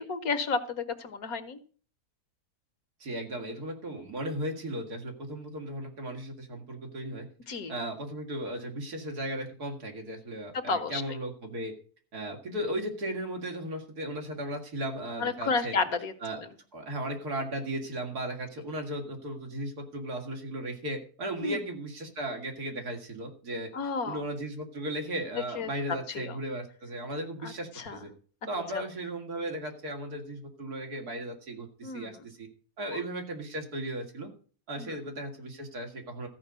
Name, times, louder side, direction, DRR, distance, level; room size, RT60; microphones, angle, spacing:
voice 1, 0.0-1.6 7.5-7.7 10.5-11.0 15.2-16.1 21.4-21.6 23.7-24.2 25.6-25.7 26.1-26.4 27.4-28.0 28.7-28.8 31.8-32.2 34.8-35.0, left 4 dB, 70° left, 10 dB, 1.6 m, -31 dB
voice 2, 3.0-7.3 7.7-11.7 12.1-15.7 16.2-16.4 16.7-23.7 24.0-28.1 28.5-32.5 32.8-34.3 34.7-36.3, right 1 dB, 90° right, 2 dB, 2.9 m, -36 dB
14.0 x 5.3 x 8.1 m, 0.42 s
omnidirectional pair, 1.6 m